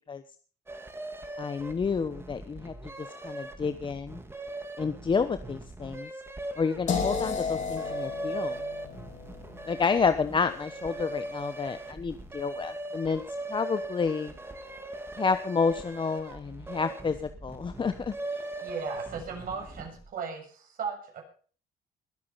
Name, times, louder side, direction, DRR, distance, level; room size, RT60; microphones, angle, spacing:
sound 1, 0.7-20.1, right 2 dB, 15° right, 2.4 m, -40 dB
voice 1, 1.4-2.7 3.2-4.2 4.8-6.1 6.6-8.6 9.7-13.2 13.5-14.3 15.2-18.5, left 5 dB, 30° left, 11 dB, 1.0 m, -29 dB
sound 2, 6.9-12.8, left 5 dB, 45° left, 4.5 m, -36 dB
voice 2, 18.6-21.2, right 5 dB, 55° right, 1 dB, 7.1 m, -37 dB
21.0 x 8.6 x 5.7 m, 0.42 s
cardioid pair, 110°, 17 cm